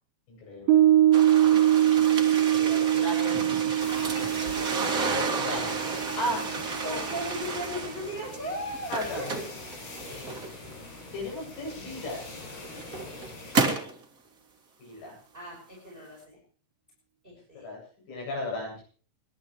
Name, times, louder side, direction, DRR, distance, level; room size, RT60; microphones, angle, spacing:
voice 1, 0.3-0.8 2.5-3.5 5.2-5.8 6.2-6.5 6.8-7.1 8.9-9.2 10.1-10.2 11.1-12.2 14.8-15.2 17.6-17.8 18.1-18.8, left 1 dB, 80° left, 0 dB, 10.5 m, -35 dB
Piano, 0.7-7.4, right 12 dB, 75° right, 5.9 m, -23 dB
sound 1, 1.1-8.4 8.7-10.7 11.7-11.8 12.5-14.0, right 3 dB, 55° right, 0.9 m, -32 dB
voice 2, 1.5-2.2 6.8-9.4 10.0-10.5 15.3-16.4 17.2-17.7, equal, 10° right, -2 dB, 5.8 m, -38 dB
sound 2, 3.8-13.6, left 2 dB, 60° left, 7.2 m, -43 dB
28.0 x 12.0 x 3.2 m, 0.42 s
omnidirectional pair, 5.4 m